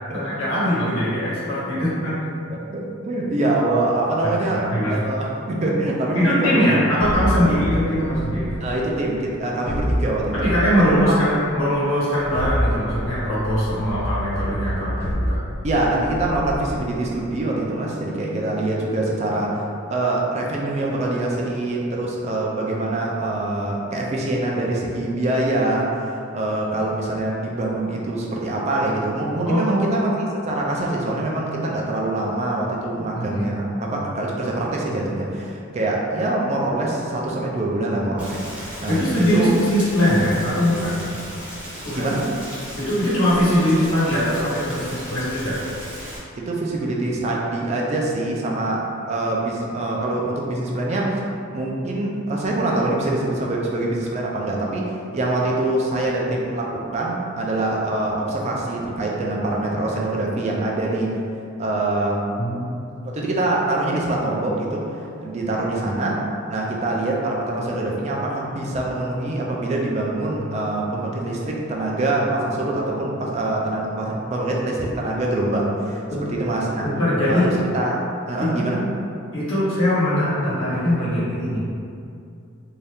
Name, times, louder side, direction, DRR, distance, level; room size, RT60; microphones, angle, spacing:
voice 1, 0.1-2.1 4.2-4.9 6.1-8.5 10.3-15.4 29.5-30.0 33.1-33.4 33.8-34.0 38.9-41.2 41.8-42.1 42.8-45.6 62.4-63.1 76.1-76.3 76.8-77.5 78.4-78.7 79.3-81.6, equal, 75° left, -10 dB, 1.2 m, -21 dB
voice 2, 2.2-6.8 8.6-10.5 10.8-11.0 15.6-19.6 19.9-39.5 41.9-42.3 46.4-51.2 51.5-61.1 61.6-62.3 63.0-64.9 65.2-76.8 77.3-78.0 78.3-78.8, right 2 dB, 35° right, -2 dB, 0.3 m, -24 dB
sound 1, 7.0-9.1 9.7-11.5 12.2-17.2, equal, 40° left, 1.0 m, -27 dB
Rain, 38.2-46.2, equal, 5° right, 0.7 m, -36 dB
2.7 x 2.3 x 3.4 m, 2.5 s
head